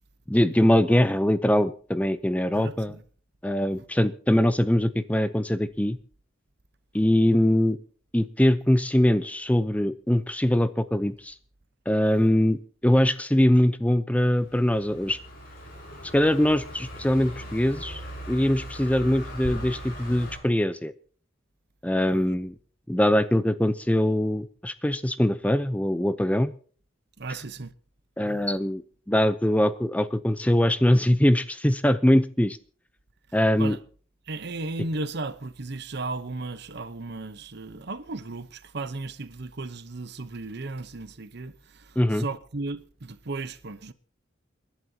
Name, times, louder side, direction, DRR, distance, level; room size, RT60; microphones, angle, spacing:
voice 1, 0.3-3.0 3.4-6.0 6.9-7.8 8.1-11.3 11.9-15.2 16.1-18.0 18.3-20.9 21.8-22.5 22.9-26.5 28.2-32.6 33.3-33.8 42.0-42.3, left 1 dB, 5° left, 0.6 m, -22 dB
voice 2, 2.5-3.0 22.1-22.3 27.2-27.7 33.6-33.8 34.3-43.9, right 3 dB, 55° right, 0.9 m, -35 dB
Car passing by, 14.3-20.4, equal, 50° left, 6.7 m, -39 dB
28.5 x 11.5 x 2.8 m
head